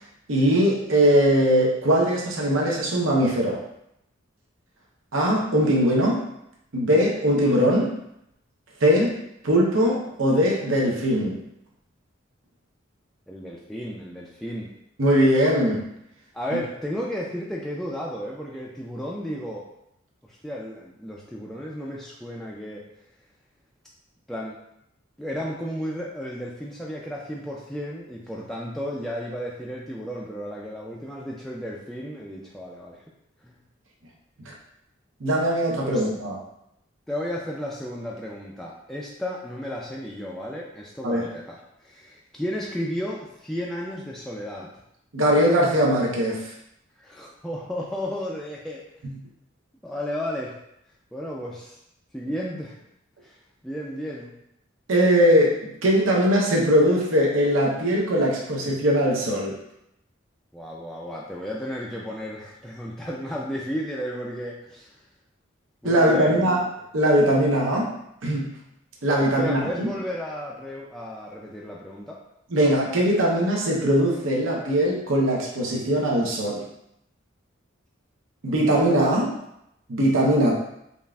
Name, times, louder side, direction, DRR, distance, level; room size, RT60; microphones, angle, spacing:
voice 1, 0.3-3.6 5.1-6.3 6.7-8.0 8.8-9.2 9.4-11.4 15.0-15.9 34.5-34.6 35.2-36.4 41.0-41.2 45.1-46.5 54.9-59.5 65.8-66.6 66.9-67.9 68.2-68.5 69.0-69.9 72.5-76.6 78.4-79.4 79.9-80.5, equal, 75° right, -2 dB, 0.7 m, -21 dB
voice 2, 13.3-14.7 16.3-19.7 20.4-22.8 24.3-24.6 25.2-33.0 33.4-33.5 35.8-36.1 37.1-44.7 47.0-48.8 49.8-50.5 51.1-51.8 52.1-52.8 53.2-53.3 53.6-54.3 60.5-65.0 65.8-66.6 69.2-72.2, equal, ahead, -5 dB, 0.3 m, -33 dB
5.3 x 2.4 x 2.3 m, 0.79 s
head